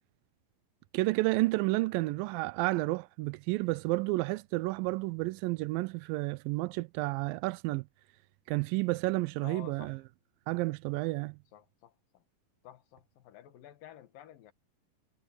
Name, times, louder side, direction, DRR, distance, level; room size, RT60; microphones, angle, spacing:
voice 1, 0.9-7.9 8.5-10.0 10.5-11.4, right 21 dB, 90° right, 2.3 m, -31 dB
voice 2, 9.4-10.0 11.5-12.2 12.6-14.5, left 12 dB, 80° left, 3.0 m, -51 dB
omnidirectional pair, 3.9 m